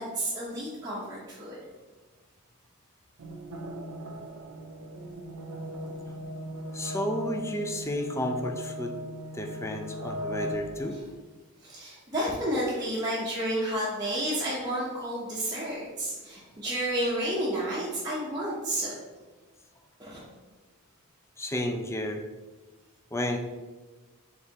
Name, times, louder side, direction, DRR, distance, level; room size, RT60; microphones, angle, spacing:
voice 1, 0.0-1.6 10.8-10.9 11.6-18.9 20.0-20.2, right 1 dB, 15° right, -9 dB, 0.7 m, -31 dB
sound 1, 3.2-10.9, left 1 dB, 90° right, 0.5 m, -38 dB
voice 2, 6.7-9.0 9.3-11.0 21.4-22.2 23.1-23.4, equal, 15° left, 4 dB, 0.3 m, -32 dB
4.8 x 3.3 x 2.8 m, 1.3 s
head